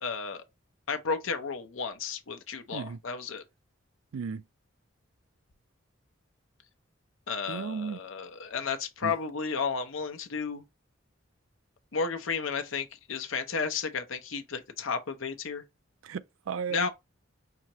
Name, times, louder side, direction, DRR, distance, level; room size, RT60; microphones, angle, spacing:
voice 1, 0.0-0.4 0.9-3.4 7.3-10.6 11.9-15.6 16.7-16.9, left 5 dB, 80° left, 0.8 m, -33 dB
voice 2, 4.1-4.4 7.5-8.0 9.0-9.1 16.0-16.9, right 6 dB, 85° right, 0.4 m, -34 dB
5.6 x 2.8 x 3.0 m
head